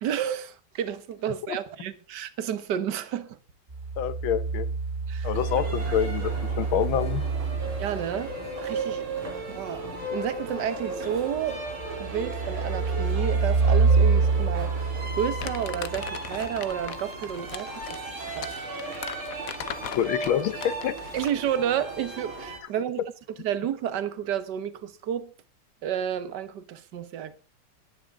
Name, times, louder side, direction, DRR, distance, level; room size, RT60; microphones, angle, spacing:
voice 1, 0.0-3.4 5.1-5.3 5.9-6.0 7.8-9.0 9.5-11.6 12.0-17.8 18.4-18.5 21.1-23.0 23.4-25.3 25.8-27.4, right 9 dB, 60° right, 1.7 m, -31 dB
sound 1, 3.7-8.3 11.7-16.3 18.4-18.5, right 4 dB, 30° right, 1.0 m, -26 dB
voice 2, 4.0-4.7 5.2-6.3 6.6-7.2 20.0-21.0 23.0-23.1, left 10 dB, 75° left, 1.7 m, -26 dB
sound 2, 5.3-22.6, right 2 dB, 75° right, 4.3 m, -36 dB
Crumpling crinkling, 15.4-21.4, left 9 dB, 55° left, 1.0 m, -39 dB
18.0 x 11.0 x 3.7 m
omnidirectional pair, 2.3 m